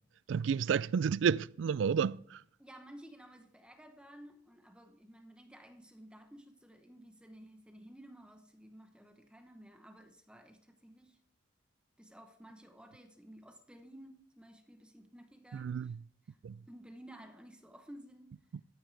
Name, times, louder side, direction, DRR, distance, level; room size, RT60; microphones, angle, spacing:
voice 1, 0.3-2.4 15.5-16.0 16.4-16.6, right 7 dB, 85° right, 0.3 m, -31 dB
voice 2, 2.6-11.2 12.0-16.0 16.2-16.4 16.7-18.4, right 1 dB, 5° right, 0.9 m, -54 dB
14.0 x 8.9 x 3.3 m
head